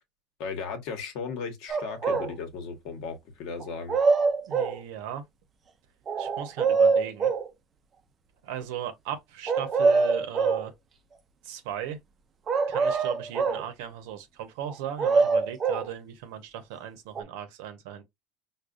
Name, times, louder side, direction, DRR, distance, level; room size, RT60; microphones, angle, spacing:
voice 1, 0.4-4.0, left 5 dB, 60° left, 1.0 m, -36 dB
sound 1, 1.7-2.3 3.6-4.8 6.1-7.5 9.5-10.7 12.5-13.7 14.7-15.9 17.2-17.3, right 4 dB, 25° right, 0.5 m, -24 dB
voice 2, 4.5-5.2 6.2-7.3 8.4-10.7 11.4-12.0 12.7-18.0, right 10 dB, 75° right, 0.7 m, -37 dB
4.8 x 2.2 x 2.4 m
supercardioid pair, 140°, 0 cm